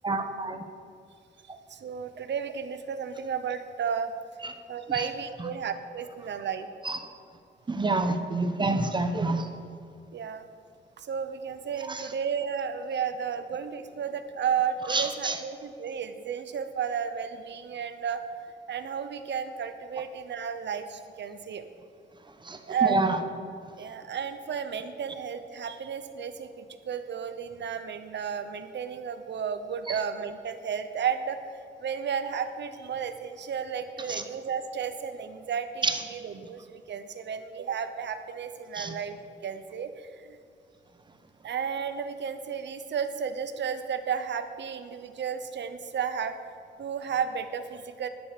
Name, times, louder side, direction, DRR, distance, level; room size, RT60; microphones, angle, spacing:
voice 1, 0.0-0.6 4.4-4.5 4.9-5.1 6.8-7.0 7.7-9.5 11.8-12.1 14.9-15.4 22.4-23.2 29.9-30.0 34.1-34.2 35.8-36.0 38.7-38.9, right 3 dB, 25° right, 8 dB, 1.0 m, -28 dB
voice 2, 1.7-4.1 4.7-6.7 10.1-10.4 11.0-18.2 18.7-21.6 22.7-23.0 23.8-31.5 31.8-39.2 39.4-40.4 41.4-46.3 46.8-48.1, right 7 dB, 65° right, 10 dB, 0.9 m, -33 dB
11.5 x 10.5 x 6.7 m, 2.3 s
wide cardioid pair, 140°, 19 cm